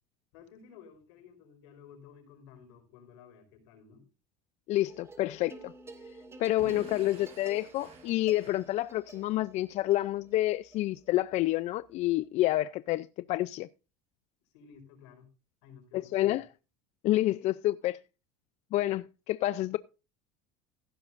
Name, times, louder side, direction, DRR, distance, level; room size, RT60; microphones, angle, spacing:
voice 1, 0.3-4.0 14.4-15.3 15.6-16.4, left 7 dB, 80° left, 4.9 m, -54 dB
voice 2, 4.7-5.7 6.4-13.7 15.9-16.4 17.0-18.0 18.7-19.8, left 15 dB, 50° left, 0.5 m, -28 dB
sound 1, 4.9-12.3, right 3 dB, 15° right, 2.1 m, -51 dB
Explosion / Shatter, 6.6-9.3, right 6 dB, 45° right, 4.8 m, -51 dB
15.5 x 12.0 x 2.6 m
supercardioid pair, 115°, 15 cm